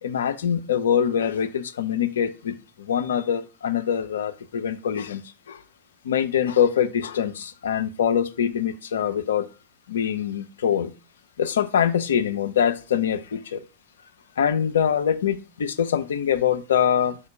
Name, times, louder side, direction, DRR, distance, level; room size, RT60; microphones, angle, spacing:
voice 1, 0.0-5.2 5.5-5.6 6.0-9.5 9.9-10.9 11.4-13.6 14.4-17.2, left 8 dB, 65° left, 0.3 m, -24 dB
5.0 x 2.1 x 4.6 m
figure-of-eight pair, 90°, 0 cm